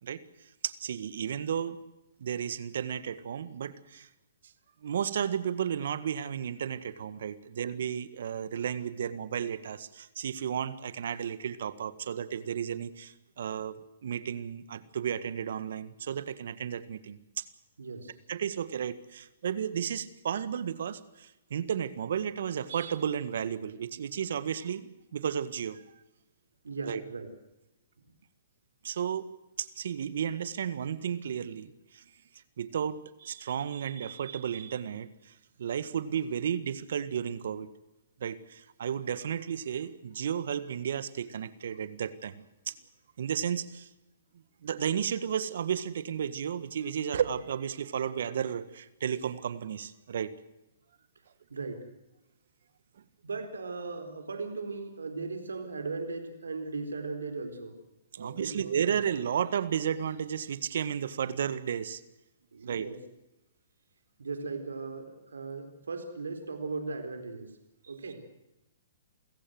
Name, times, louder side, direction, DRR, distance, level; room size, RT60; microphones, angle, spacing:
voice 1, 0.0-1.8 2.2-4.1 4.8-13.8 14.0-17.4 18.3-25.8 26.9-27.0 28.8-29.3 29.6-32.0 32.6-35.3 35.6-37.7 38.2-42.3 42.7-42.8 43.2-43.9 44.6-50.3 58.1-62.0 62.6-62.9, right 8 dB, 65° right, 14 dB, 1.7 m, -33 dB
voice 2, 17.8-18.1 26.6-27.3 51.5-51.9 53.2-57.8 58.1-58.9 62.5-63.0 64.2-67.5 67.9-68.2, right 3 dB, 85° right, 7 dB, 4.0 m, -38 dB
28.5 x 16.0 x 7.8 m, 0.94 s
hypercardioid pair, 130°, 0 cm